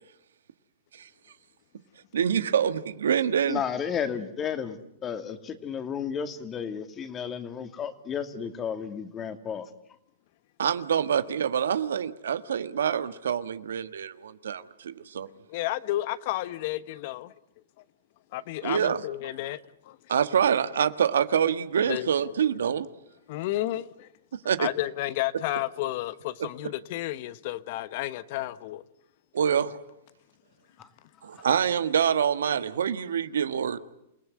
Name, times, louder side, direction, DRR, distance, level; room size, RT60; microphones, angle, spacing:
voice 1, 2.1-3.6 10.6-15.3 18.6-19.0 20.1-22.9 24.4-24.7 29.3-29.8 31.2-33.8, right 8 dB, 85° right, 1.5 m, -26 dB
voice 2, 3.5-9.7 30.8-30.9, left 7 dB, 25° left, 2.6 m, -33 dB
voice 3, 15.5-17.3 18.3-20.0 21.8-22.3 23.3-24.1 24.6-28.8, left 15 dB, 55° left, 1.1 m, -32 dB
28.5 x 18.0 x 9.6 m
hypercardioid pair, 125°, 0 cm